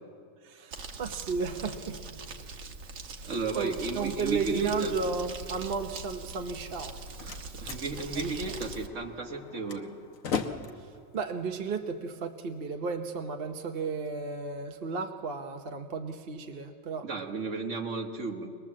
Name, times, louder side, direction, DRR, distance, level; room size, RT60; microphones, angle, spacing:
voice 1, 0.4-2.0 3.1-6.9 8.2-8.6 11.1-17.1, right 5 dB, 50° right, 5 dB, 1.0 m, -34 dB
Crumpling crinkling, 0.7-8.9, right 3 dB, 80° right, 1.6 m, -42 dB
voice 2, 3.3-4.9 7.2-9.9 17.0-18.5, right 3 dB, 65° right, 4 dB, 1.8 m, -34 dB
Slam, 6.7-12.7, left 6 dB, 85° left, 1.5 m, -39 dB
23.0 x 21.0 x 7.4 m, 2.2 s
omnidirectional pair, 1.4 m